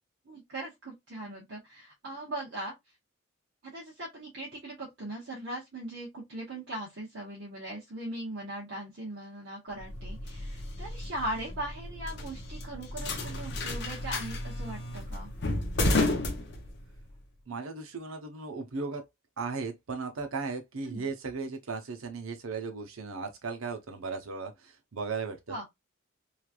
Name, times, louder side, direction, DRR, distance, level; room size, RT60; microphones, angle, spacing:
voice 1, 0.3-2.7 3.6-15.3 20.9-21.1 25.5-25.6, right 1 dB, 55° right, 1.0 m, -39 dB
sound 1, 9.8-17.1, left 2 dB, 55° left, 0.7 m, -32 dB
voice 2, 17.5-19.0 19.4-25.6, right 4 dB, 80° right, 0.7 m, -36 dB
3.1 x 2.4 x 2.3 m
head